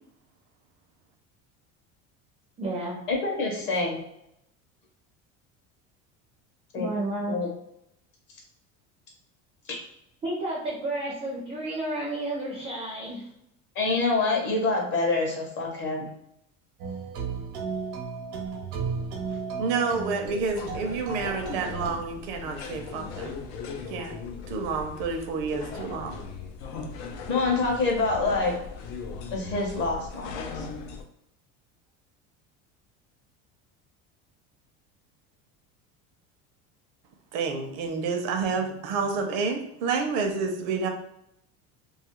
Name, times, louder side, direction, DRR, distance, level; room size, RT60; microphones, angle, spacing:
voice 1, 2.6-3.0 6.7-7.4 10.2-13.2 19.3-19.4, right 1 dB, 20° right, -5 dB, 0.4 m, -31 dB
voice 2, 3.1-4.0 6.7-6.9 7.3-7.5 9.7-9.8 13.7-16.1 27.3-28.5 29.3-30.7, left 3 dB, 35° left, 0 dB, 0.6 m, -26 dB
sound 1, 16.8-21.9, right 5 dB, 90° right, 0.9 m, -34 dB
voice 3, 19.6-23.4 23.9-24.1 24.5-26.1 37.3-40.9, right 4 dB, 65° right, 5 dB, 0.6 m, -29 dB
sound 2, 20.2-31.0, left 5 dB, 85° left, 0.5 m, -38 dB
2.6 x 2.4 x 2.9 m, 0.79 s
cardioid pair, 180°, 33 cm